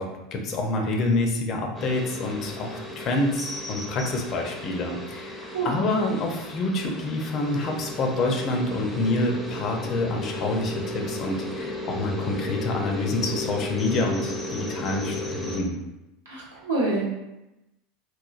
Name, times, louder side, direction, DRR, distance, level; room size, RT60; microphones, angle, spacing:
voice 1, 0.0-15.7, left 2 dB, 45° left, 2 dB, 0.5 m, -27 dB
sound 1, 1.7-15.6, left 1 dB, 5° left, 0.6 m, -35 dB
voice 2, 16.3-17.1, right 2 dB, 90° right, -6 dB, 0.9 m, -26 dB
3.1 x 2.1 x 2.4 m, 0.94 s
hypercardioid pair, 90°, 0 cm